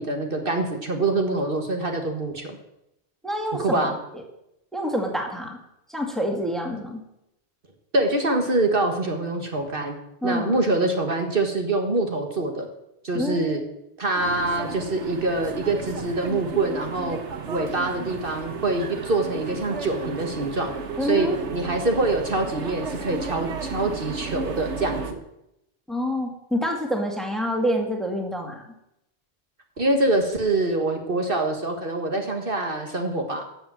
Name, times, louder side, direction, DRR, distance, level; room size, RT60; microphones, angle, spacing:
voice 1, 0.0-2.6 3.6-4.0 7.9-10.0 10.2-12.7 13.0-13.6 14.0-17.2 17.5-20.7 21.0-25.2 29.8-33.4, right 2 dB, 55° right, 3 dB, 1.7 m, -25 dB
voice 2, 3.2-3.9 4.7-5.6 5.9-7.0 10.2-10.6 13.1-13.6 21.0-21.4 25.9-28.6, equal, ahead, 2 dB, 2.0 m, -27 dB
sound 1, 14.2-25.1, right 5 dB, 90° right, 1.4 m, -34 dB
13.5 x 7.7 x 7.6 m, 0.85 s
omnidirectional pair, 1.1 m